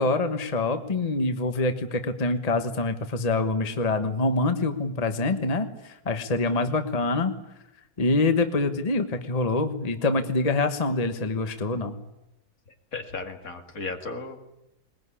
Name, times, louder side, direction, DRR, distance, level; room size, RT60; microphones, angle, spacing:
voice 1, 0.0-7.3 8.0-11.9, left 2 dB, 25° left, 8 dB, 1.3 m, -25 dB
voice 2, 12.9-14.4, left 3 dB, 65° left, 5 dB, 2.6 m, -35 dB
21.0 x 20.5 x 9.9 m, 0.91 s
omnidirectional pair, 1.6 m